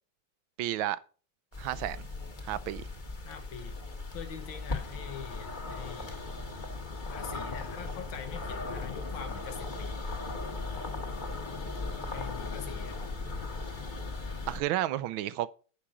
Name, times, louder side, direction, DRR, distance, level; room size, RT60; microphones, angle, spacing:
voice 1, 0.6-1.0 1.6-2.1 2.5-2.9 14.5-15.5, right 13 dB, 85° right, 1.4 m, -31 dB
sound 1, 1.5-14.6, left 3 dB, 30° left, 1.3 m, -38 dB
voice 2, 3.2-3.8 4.1-6.2 7.1-10.0 12.1-13.0, left 8 dB, 80° left, 2.1 m, -44 dB
9.8 x 5.9 x 4.9 m
omnidirectional pair, 2.2 m